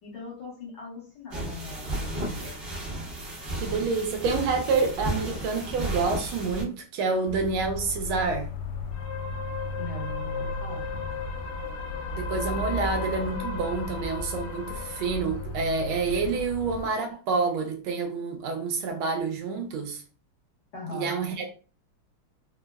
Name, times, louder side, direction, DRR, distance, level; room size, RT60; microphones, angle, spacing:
voice 1, 0.0-2.6 9.8-11.3 20.7-21.2, left 3 dB, 60° left, 1.7 m, -40 dB
sound 1, 1.3-6.6, right 1 dB, 45° right, 0.8 m, -33 dB
voice 2, 3.5-8.5 12.1-20.0 20.9-21.5, right 4 dB, 75° right, 1.5 m, -28 dB
sound 2, 7.3-16.9, left 3 dB, 85° left, 1.5 m, -34 dB
3.9 x 2.1 x 2.2 m
omnidirectional pair, 2.4 m